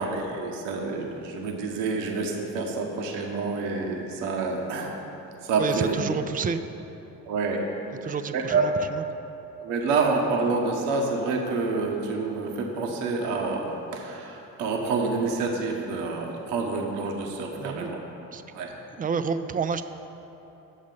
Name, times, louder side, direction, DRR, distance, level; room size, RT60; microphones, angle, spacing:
voice 1, 0.0-5.0 5.4-5.9 7.2-7.7 8.0-8.7 9.6-18.0 18.5-18.8, right 3 dB, 65° right, 2 dB, 1.1 m, -28 dB
voice 2, 5.6-6.6 8.0-9.0 17.6-17.9 18.3-18.4 19.0-19.8, right 6 dB, 20° right, 10 dB, 0.4 m, -29 dB
9.4 x 7.2 x 5.3 m, 3.0 s
figure-of-eight pair, 50°, 45 cm